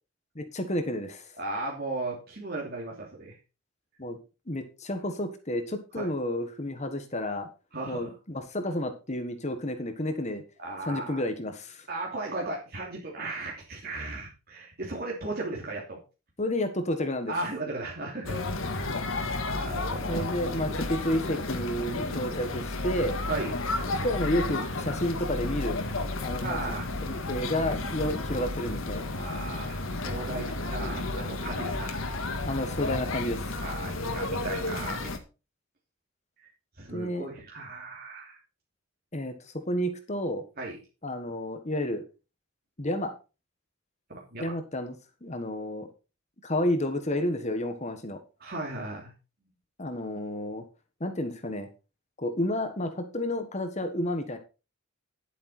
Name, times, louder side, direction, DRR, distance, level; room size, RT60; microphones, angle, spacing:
voice 1, 0.3-1.3 4.0-4.2 4.5-7.5 7.9-10.4 10.8-11.9 16.4-17.3 19.2-19.3 20.1-23.2 23.9-25.8 26.2-26.6 27.0-29.1 32.4-33.6 36.9-37.3 39.1-40.4 41.0-42.0 42.8-43.1 44.4-44.9 45.2-45.9 46.4-48.2 49.8-50.6 51.0-51.7 52.2-54.4, left 1 dB, 35° left, 7 dB, 1.5 m, -31 dB
voice 2, 1.4-3.3 6.0-6.1 7.7-8.1 10.6-11.2 11.9-16.0 17.3-20.4 21.9-22.3 23.2-23.6 26.4-26.9 29.2-32.0 33.6-35.1 36.8-38.4 40.6-40.7 44.1-44.5 48.4-49.1, right 2 dB, 50° right, -2 dB, 3.0 m, -36 dB
sound 1, 18.2-35.2, left 2 dB, 75° left, 1.7 m, -32 dB
11.0 x 8.3 x 4.4 m, 0.31 s
head